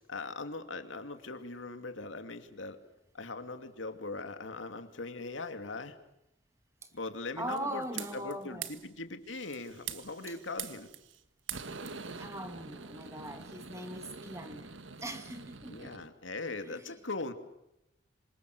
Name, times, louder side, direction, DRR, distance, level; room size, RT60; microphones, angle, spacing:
voice 1, 0.1-2.8 3.1-6.0 6.9-10.9 15.7-17.3, left 3 dB, 90° left, 2.7 m, -40 dB
voice 2, 7.4-8.7 12.1-14.7 15.0-15.9 16.6-16.9, right 1 dB, 15° right, 2.2 m, -40 dB
sound 1, 7.5-8.3 8.6-8.9 9.3-11.2 11.5-16.1, right 6 dB, 90° right, 1.7 m, -44 dB
27.0 x 26.5 x 6.8 m
head